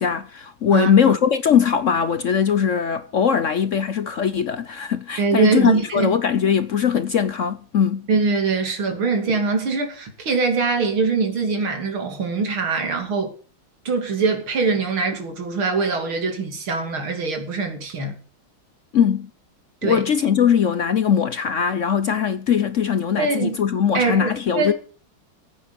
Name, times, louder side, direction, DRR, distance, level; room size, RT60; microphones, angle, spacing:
voice 1, 0.0-8.1 18.9-19.3 19.8-24.7, left 7 dB, 70° left, 0.7 m, -20 dB
voice 2, 5.2-6.1 8.1-13.3 13.9-18.2 19.8-20.0 23.2-23.6 23.9-24.7, right 4 dB, 75° right, 3.5 m, -22 dB
15.0 x 9.2 x 6.9 m
omnidirectional pair, 2.3 m